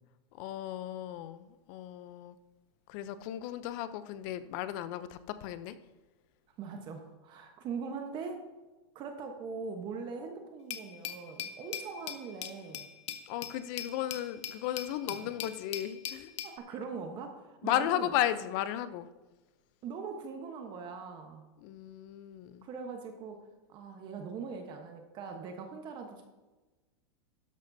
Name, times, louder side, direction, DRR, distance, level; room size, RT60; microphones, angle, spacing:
voice 1, 0.3-2.3 2.9-5.8 13.3-16.3 17.6-19.1 21.6-22.7, left 12 dB, 45° left, 13 dB, 0.7 m, -35 dB
voice 2, 6.6-8.5 8.9-12.9 16.4-18.1 19.8-21.5 22.6-23.4 23.7-26.2, right 5 dB, 30° right, 4 dB, 1.1 m, -41 dB
Glass, 10.7-16.6, left 10 dB, 75° left, 0.9 m, -41 dB
13.0 x 10.5 x 2.7 m, 1.2 s
supercardioid pair, 150°, 15 cm